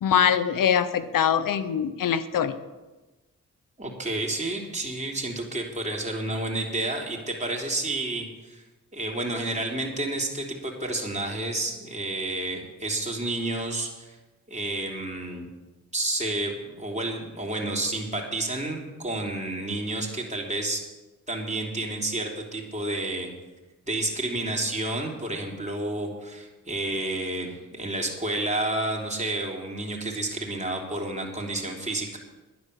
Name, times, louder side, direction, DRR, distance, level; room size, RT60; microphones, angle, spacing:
voice 1, 0.0-2.6, left 8 dB, 85° left, 13 dB, 0.8 m, -23 dB
voice 2, 3.8-8.6 8.9-14.1 14.5-15.5 15.9-20.9 21.3-23.3 23.9-32.2, right 2 dB, 20° right, 0 dB, 3.4 m, -30 dB
10.5 x 10.0 x 6.8 m, 1.1 s
cardioid pair, 50°, 32 cm